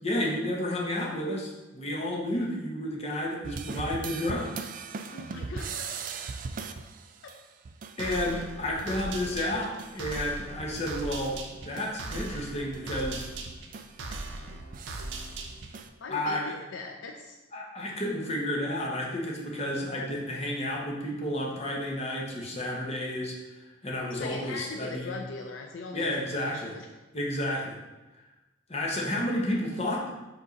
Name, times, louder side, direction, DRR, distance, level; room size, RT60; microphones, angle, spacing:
voice 1, 0.0-4.7 8.0-13.3 16.1-16.5 17.5-25.1 25.9-26.8 27.1-27.8 28.7-30.1, left 1 dB, 30° left, -2 dB, 1.1 m, -31 dB
sound 1, 3.4-11.0 11.3-15.9, right 5 dB, 40° right, 0.3 m, -41 dB
voice 2, 5.1-6.4 7.2-7.4 16.0-17.4 24.1-26.9, left 3 dB, 70° left, 2 dB, 0.5 m, -40 dB
sound 2, 8.0-15.9, right 2 dB, 65° right, 0.7 m, -39 dB
5.1 x 3.6 x 5.3 m, 1.1 s
head